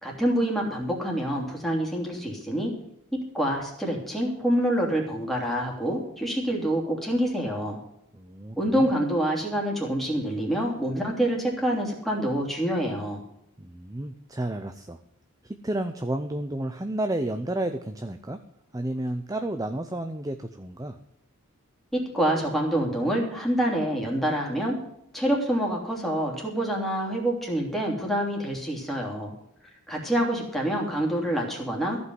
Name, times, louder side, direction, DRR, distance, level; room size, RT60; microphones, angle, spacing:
voice 1, 0.0-2.7 3.3-7.8 8.6-13.2 21.9-24.8 25.1-29.3 29.9-32.0, right 1 dB, ahead, -2 dB, 2.9 m, -26 dB
voice 2, 8.1-8.9 13.6-15.0 15.4-18.4 18.7-21.0, right 1 dB, 15° right, 8 dB, 0.6 m, -31 dB
15.0 x 5.4 x 9.6 m, 0.78 s
head